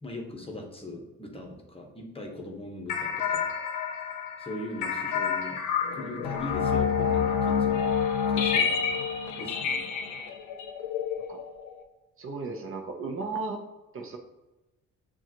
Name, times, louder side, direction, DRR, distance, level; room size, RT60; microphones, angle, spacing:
voice 1, 0.0-3.5 4.4-5.6 5.9-7.9 8.3-8.8 9.4-9.9, left 1 dB, 20° left, 1 dB, 1.0 m, -40 dB
sound 1, 2.9-11.8, left 7 dB, 85° left, 0.6 m, -28 dB
voice 2, 12.2-13.6 13.9-14.2, right 3 dB, 45° right, 3 dB, 0.7 m, -35 dB
7.1 x 2.4 x 2.9 m, 1.0 s
cardioid pair, 90°, 30 cm